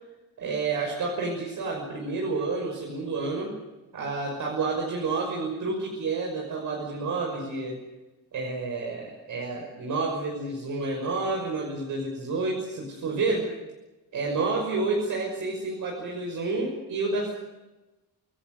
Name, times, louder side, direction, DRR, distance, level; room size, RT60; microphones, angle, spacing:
voice 1, 0.4-3.5 3.9-7.8 8.3-13.5 14.1-17.3, right 3 dB, 65° right, -1 dB, 6.0 m, -29 dB
28.5 x 18.5 x 8.0 m, 1.1 s
wide cardioid pair, 165°, 34 cm